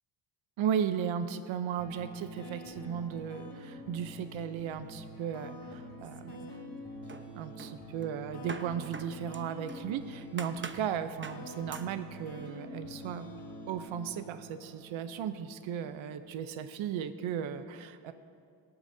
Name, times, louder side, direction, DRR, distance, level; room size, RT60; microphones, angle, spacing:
voice 1, 0.6-6.5 7.3-13.3 13.7-18.1, right 8 dB, 80° right, 10 dB, 0.7 m, -36 dB
sound 1, 1.8-16.9, left 1 dB, 60° left, 3.2 m, -47 dB
sound 2, 6.0-6.8 7.1-9.9 10.4-10.9 11.2-11.5 11.7-12.0, right 4 dB, 25° right, 0.8 m, -45 dB
22.5 x 8.9 x 2.7 m, 2.2 s
supercardioid pair, 45°, 46 cm